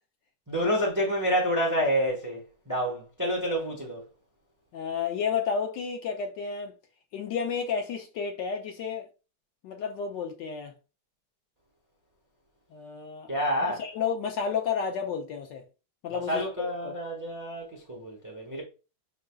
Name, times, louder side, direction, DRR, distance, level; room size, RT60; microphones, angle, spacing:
voice 1, 0.5-4.1 13.3-13.8 16.3-18.6, equal, 15° right, 0.6 m, -28 dB
voice 2, 4.7-6.7 7.1-9.1 9.6-10.7 12.7-13.3 13.7-15.6 16.0-16.9, left 6 dB, 70° left, 1.2 m, -31 dB
5.1 x 3.8 x 2.3 m
omnidirectional pair, 2.2 m